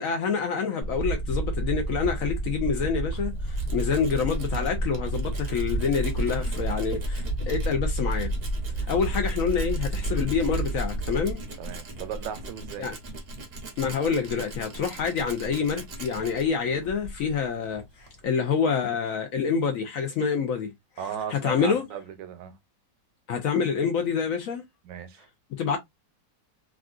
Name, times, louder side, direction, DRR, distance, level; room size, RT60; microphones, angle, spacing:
voice 1, 0.0-8.3 8.9-11.4 12.8-12.9 13.8-20.7 21.3-21.8 23.3-24.6 25.6-25.8, left 6 dB, 65° left, 0.8 m, -27 dB
sound 1, 0.8-11.3, right 2 dB, 30° left, 1.0 m, -30 dB
Tools, 2.9-18.2, right 1 dB, 50° right, 0.7 m, -40 dB
voice 2, 11.6-12.9 21.0-22.6 24.8-25.3, right 8 dB, 75° right, 1.3 m, -36 dB
3.7 x 2.4 x 2.3 m
omnidirectional pair, 2.0 m